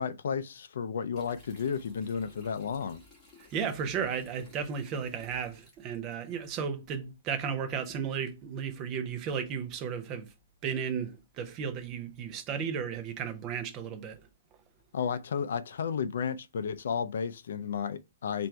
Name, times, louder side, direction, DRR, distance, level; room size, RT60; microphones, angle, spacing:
voice 1, 0.0-3.0 14.9-18.5, left 6 dB, 60° left, 0.4 m, -33 dB
sound 1, 1.1-6.3, left 1 dB, 10° left, 1.5 m, -58 dB
voice 2, 3.5-10.3 10.6-14.2, right 7 dB, 20° right, 0.6 m, -34 dB
4.4 x 2.5 x 4.4 m
hypercardioid pair, 175°, 0 cm